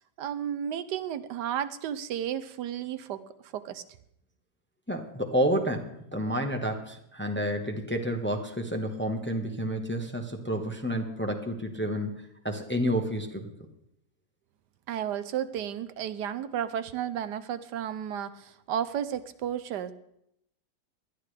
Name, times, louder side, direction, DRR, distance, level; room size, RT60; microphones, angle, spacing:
voice 1, 0.2-3.2 3.5-3.8 14.9-19.9, right 9 dB, 90° right, 12 dB, 1.4 m, -33 dB
voice 2, 4.9-13.5, equal, 10° left, 3 dB, 1.1 m, -30 dB
20.0 x 12.5 x 3.3 m, 0.77 s
omnidirectional pair, 1.8 m